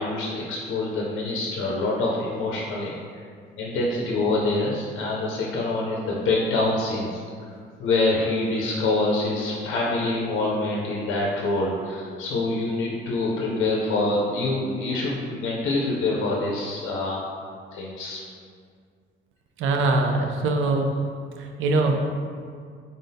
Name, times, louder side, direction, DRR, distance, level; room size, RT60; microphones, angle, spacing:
voice 1, 0.0-2.9 3.6-7.5 7.8-17.3 17.7-18.2, left 2 dB, 85° left, -3 dB, 0.6 m, -25 dB
voice 2, 19.6-21.0 21.4-22.0, right 2 dB, 85° right, 3 dB, 0.5 m, -22 dB
3.8 x 3.6 x 2.6 m, 2.1 s
cardioid pair, 90°, 20 cm